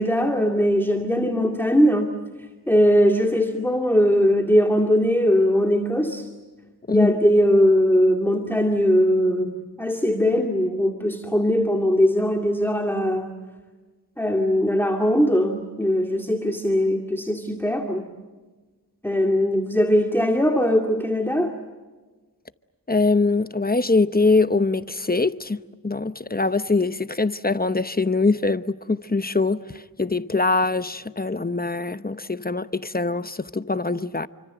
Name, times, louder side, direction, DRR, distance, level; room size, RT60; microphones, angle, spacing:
voice 1, 0.0-2.1 2.7-6.3 6.9-13.3 14.2-18.1 19.0-21.5, equal, 5° left, 2.3 m, -20 dB
voice 2, 22.9-34.3, left 3 dB, 25° left, 0.9 m, -23 dB
29.0 x 25.0 x 7.9 m
wide cardioid pair, 75°, 39 cm